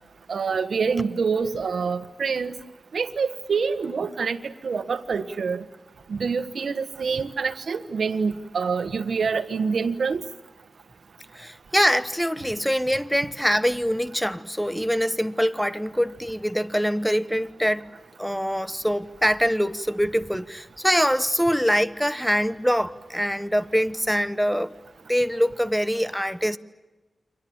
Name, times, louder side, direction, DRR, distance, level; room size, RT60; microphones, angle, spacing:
voice 1, 0.3-2.5 2.9-5.6 6.1-10.2, right 5 dB, 80° right, 1.5 m, -26 dB
voice 2, 11.3-17.9 18.2-24.7 25.1-26.6, equal, ahead, 1.0 m, -24 dB
29.5 x 25.0 x 7.2 m
wide cardioid pair, 80°, 0 cm